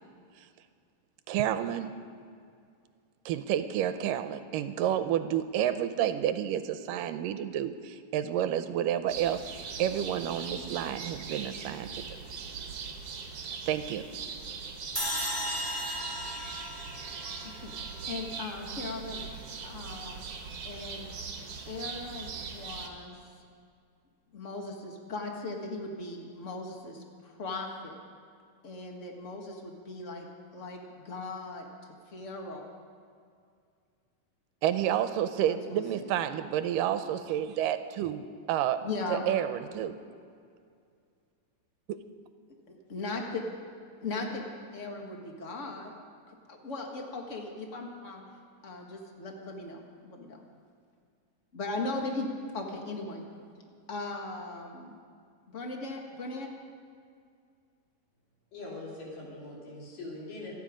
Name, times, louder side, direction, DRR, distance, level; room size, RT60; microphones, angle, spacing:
voice 1, 1.3-1.9 3.3-12.2 13.7-14.1 34.6-38.8 39.1-40.0 41.9-42.0, right 10 dB, 85° right, 10 dB, 2.3 m, -30 dB
sound 1, 9.1-22.9, right 5 dB, 55° right, 2.0 m, -41 dB
sound 2, 15.0-18.2, equal, 5° left, 3.5 m, -35 dB
voice 2, 18.1-19.2 19.6-20.2 20.6-21.1 21.7-23.2 24.3-28.0 28.6-30.3 30.5-31.7 32.1-32.7 35.5-36.1 38.8-39.2 42.7-43.4 44.0-44.4 44.7-45.9 46.3-48.2 48.6-50.4 51.5-52.3 52.5-53.2 53.9-54.9 55.5-56.5, left 3 dB, 40° left, 2 dB, 1.1 m, -38 dB
voice 3, 58.5-60.5, left 2 dB, 75° left, -4 dB, 4.7 m, -42 dB
27.0 x 9.9 x 5.1 m, 2.3 s
omnidirectional pair, 3.9 m